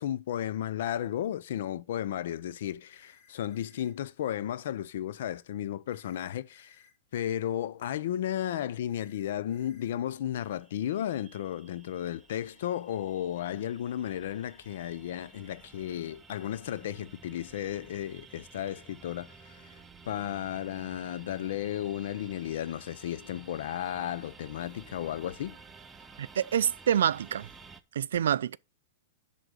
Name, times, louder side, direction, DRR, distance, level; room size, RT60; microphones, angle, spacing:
voice 1, 0.0-6.8 7.1-19.8 20.1-25.6 28.1-28.2, left 11 dB, 55° left, 0.5 m, -34 dB
sound 1, 2.9-3.9 5.9-6.9 8.9-9.9, left 6 dB, 30° left, 3.5 m, -62 dB
sound 2, 10.4-27.8, right 4 dB, 10° right, 0.5 m, -53 dB
voice 2, 26.2-27.5 27.9-28.6, right 9 dB, 90° right, 0.4 m, -27 dB
11.0 x 3.8 x 6.6 m
supercardioid pair, 175°, 0 cm